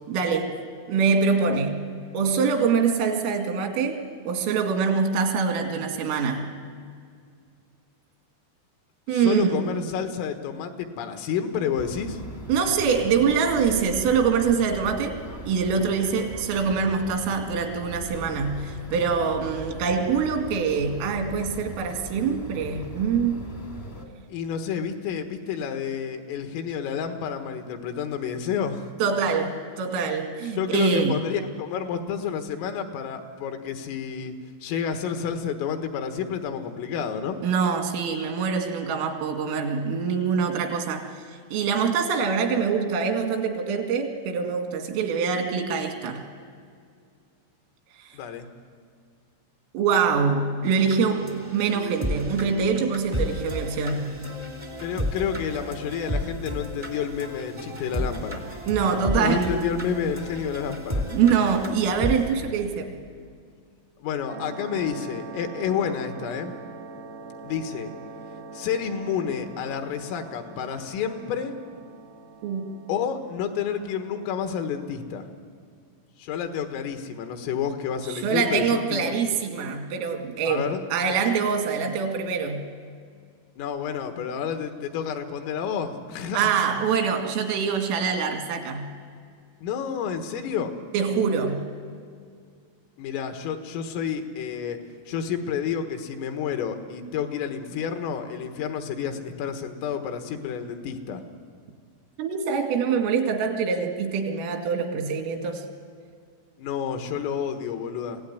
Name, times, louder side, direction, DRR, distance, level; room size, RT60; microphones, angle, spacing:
voice 1, 0.1-0.6 0.9-1.8 2.1-6.5 9.1-9.7 12.5-15.2 15.5-23.4 29.0-31.2 37.4-41.1 41.5-46.2 49.7-54.1 58.7-59.6 61.1-63.0 72.4-72.7 78.2-82.6 86.3-88.9 90.9-91.6 102.2-105.6, right 6 dB, 85° right, 4 dB, 4.8 m, -24 dB
voice 2, 9.1-12.2 24.3-28.9 30.6-34.3 34.6-37.4 48.1-48.5 54.8-58.4 59.2-61.1 64.0-66.5 67.4-67.9 68.5-71.5 72.9-75.3 76.2-79.1 80.5-80.8 83.6-86.5 89.6-90.8 93.0-94.8 95.1-101.2 106.6-108.2, left 7 dB, 85° left, 6 dB, 4.1 m, -30 dB
sound 1, 11.7-24.0, equal, 35° left, 0.7 m, -40 dB
sound 2, 50.6-62.3, equal, 20° right, 0.6 m, -32 dB
sound 3, 64.3-75.1, right 4 dB, 70° right, 1.4 m, -43 dB
25.5 x 17.0 x 9.5 m, 2.1 s
omnidirectional pair, 5.8 m